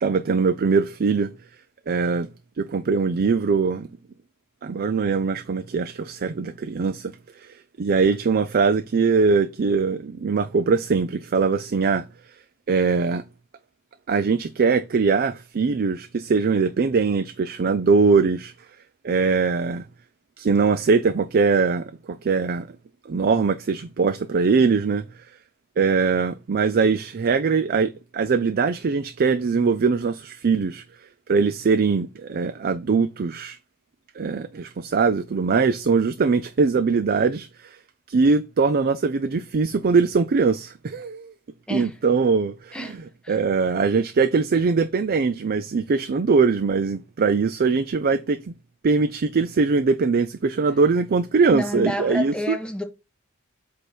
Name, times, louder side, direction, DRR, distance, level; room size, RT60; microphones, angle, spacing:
voice 1, 0.0-1.3 1.9-2.3 2.6-3.9 4.6-7.1 7.4-12.0 12.7-13.2 14.1-18.5 19.0-19.8 20.4-22.7 23.1-25.0 25.8-30.8 31.3-33.6 34.2-37.8 38.1-41.3 41.7-42.9 43.3-48.4 48.8-52.6, right 4 dB, 45° right, 0.4 m, -21 dB
voice 2, 51.5-52.8, left 1 dB, 5° left, 1.2 m, -29 dB
8.1 x 2.9 x 6.0 m
head